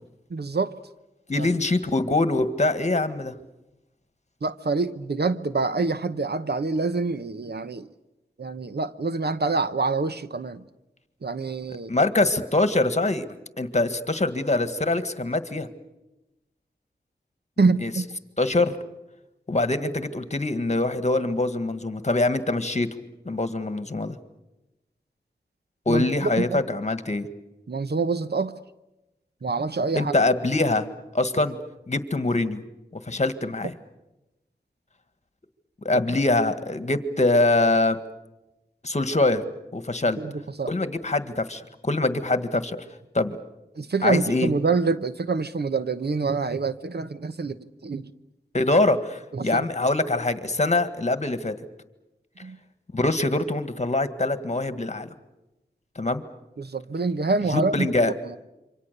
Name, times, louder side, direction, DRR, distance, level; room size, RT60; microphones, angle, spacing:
voice 1, 0.3-0.7 1.4-1.5 4.4-7.9 8.4-10.6 11.2-11.9 17.6-18.1 25.9-26.6 27.7-28.6 29.4-30.1 35.9-36.0 40.2-40.7 43.8-48.1 49.3-49.6 52.4-52.6 56.6-58.4, right 4 dB, 65° right, 1.0 m, -26 dB
voice 2, 1.3-3.4 11.9-13.3 13.6-15.7 17.8-17.9 18.4-18.7 19.5-22.9 23.3-24.2 25.9-27.3 29.9-30.9 31.1-31.6 31.9-32.6 32.9-33.7 35.8-38.0 38.8-39.4 39.7-40.2 40.7-42.8 43.1-43.4 44.0-44.5 48.5-51.5 52.9-55.1 56.0-56.2 57.5-58.1, left 2 dB, 40° left, 1.8 m, -24 dB
27.5 x 25.0 x 6.8 m
wide cardioid pair, 60°, 18 cm